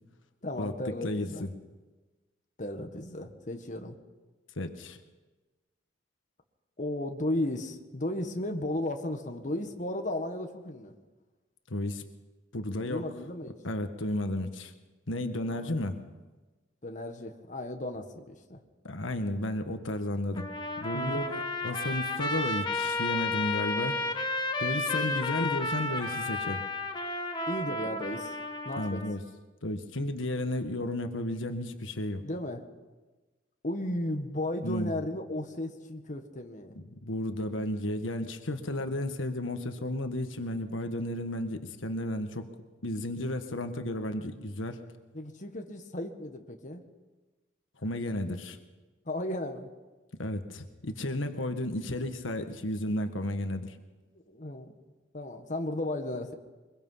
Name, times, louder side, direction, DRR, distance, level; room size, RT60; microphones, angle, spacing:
voice 1, 0.4-1.4 2.6-3.9 6.8-10.9 12.8-13.5 15.3-15.8 16.8-18.6 20.9-21.2 27.5-28.4 28.6-29.0 32.2-32.6 33.6-36.8 45.1-46.8 49.0-49.7 54.3-54.7 55.1-56.3, left 1 dB, 40° left, 5 dB, 1.6 m, -35 dB
voice 2, 1.0-1.5 4.6-5.0 11.7-12.0 12.5-13.1 13.6-14.7 15.1-16.0 18.8-20.5 20.8-24.0 24.6-26.6 28.8-29.2 29.6-32.2 34.6-34.9 36.9-42.5 42.8-44.8 47.8-48.6 50.2-53.7, left 1 dB, 90° left, 7 dB, 1.5 m, -33 dB
Trumpet, 20.4-29.2, left 2 dB, 25° left, 1.5 m, -32 dB
23.5 x 22.0 x 5.7 m, 1.2 s
head